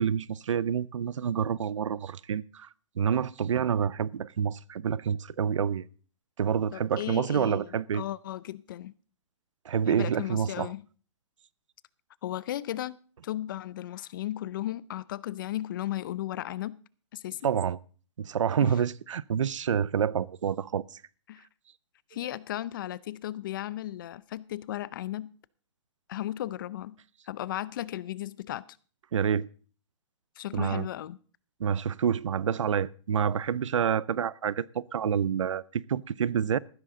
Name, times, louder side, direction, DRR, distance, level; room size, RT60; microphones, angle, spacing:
voice 1, 0.0-2.7 3.0-5.9 6.4-8.0 9.7-10.7 17.4-17.8 18.2-21.0 29.1-29.5 30.5-30.9 31.6-36.6, right 8 dB, 90° right, 0.6 m, -28 dB
voice 2, 6.7-8.9 9.9-10.8 12.2-13.0 13.2-16.8 17.1-17.4 18.6-18.7 21.3-21.5 22.1-25.3 26.1-27.0 27.3-28.6 30.4-31.2, left 13 dB, 45° left, 0.6 m, -35 dB
14.5 x 13.0 x 3.9 m
hypercardioid pair, 160°, 16 cm